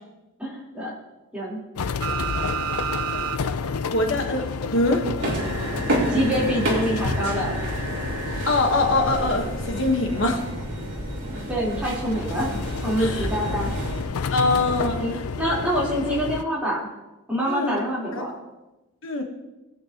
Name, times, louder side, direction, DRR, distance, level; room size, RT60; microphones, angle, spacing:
voice 1, 0.4-0.9 1.3-1.6 6.1-7.5 11.5-12.5 12.8-13.7 15.0-16.9 17.3-18.3, equal, 5° right, -7 dB, 3.7 m, -26 dB
sound 1, 1.8-16.4, left 5 dB, 90° left, 0.5 m, -31 dB
sound 2, 2.0-3.4 3.7-3.8 5.4-8.5 10.2-10.3, right 7 dB, 90° right, 1.1 m, -33 dB
voice 2, 3.9-5.1 8.4-10.4 13.0-13.3 14.3-15.2 17.5-17.8 18.1-18.2 19.0-19.2, left 2 dB, 60° left, 2 dB, 1.3 m, -23 dB
sound 3, 5.2-14.0, right 1 dB, 55° right, 3.6 m, -29 dB
20.5 x 8.6 x 2.9 m, 1.0 s
head